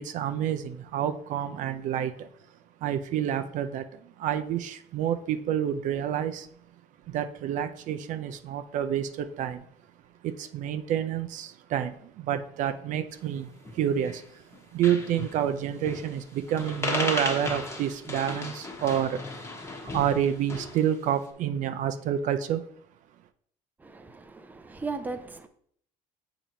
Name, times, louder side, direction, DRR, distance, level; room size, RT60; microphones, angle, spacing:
voice 1, 0.0-2.3 2.8-6.5 7.1-9.6 10.2-14.4 14.7-19.2 19.8-22.6, right 10 dB, 65° right, 0.5 m, -29 dB
sound 1, 13.6-14.2 14.5-14.6 14.8-15.4 15.8-16.2 16.5-20.9, left 2 dB, 20° left, 1.1 m, -35 dB
voice 2, 23.8-25.5, right 3 dB, 10° right, 0.5 m, -37 dB
6.9 x 2.9 x 5.1 m
cardioid pair, 130°, 14 cm